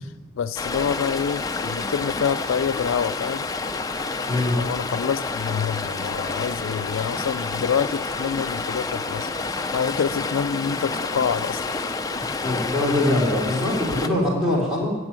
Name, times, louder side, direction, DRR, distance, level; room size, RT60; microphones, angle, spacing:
voice 1, 0.3-3.5 4.5-9.3 9.7-11.9 12.3-12.5, left 7 dB, 75° left, 12 dB, 0.4 m, -27 dB
Stream, 0.6-14.1, left 3 dB, 20° left, 0.5 m, -29 dB
voice 2, 4.3-4.6 12.4-14.9, left 1 dB, 5° right, -5 dB, 3.5 m, -22 dB
13.5 x 6.3 x 8.8 m, 1.2 s
head